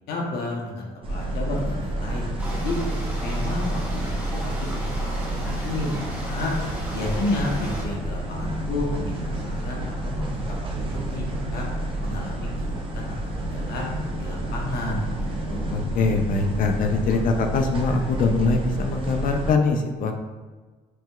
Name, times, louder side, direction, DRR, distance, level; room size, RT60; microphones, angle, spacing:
voice 1, 0.1-2.8 3.2-6.5 6.9-10.4 10.8-11.7 12.0-13.9 14.2-15.9, left 2 dB, 70° left, -1 dB, 1.1 m, -32 dB
sound 1, 1.0-19.5, right 1 dB, 30° right, 0.7 m, -29 dB
sound 2, 2.4-7.8, right 1 dB, 10° right, 1.1 m, -36 dB
voice 2, 15.7-20.1, left 3 dB, 55° left, 4 dB, 0.6 m, -23 dB
5.9 x 2.8 x 2.4 m, 1.4 s
cardioid pair, 110°, 17 cm